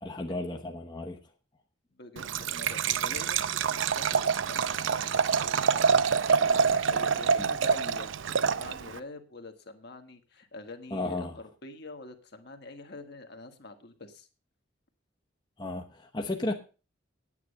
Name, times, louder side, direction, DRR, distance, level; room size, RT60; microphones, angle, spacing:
voice 1, 0.0-1.2 7.4-7.5 10.9-11.4 15.6-16.5, left 2 dB, 25° left, 1.0 m, -34 dB
voice 2, 1.9-14.3, left 2 dB, 55° left, 1.8 m, -46 dB
Liquid, 2.2-9.0, right 6 dB, 80° right, 0.6 m, -26 dB
9.5 x 9.4 x 6.6 m
head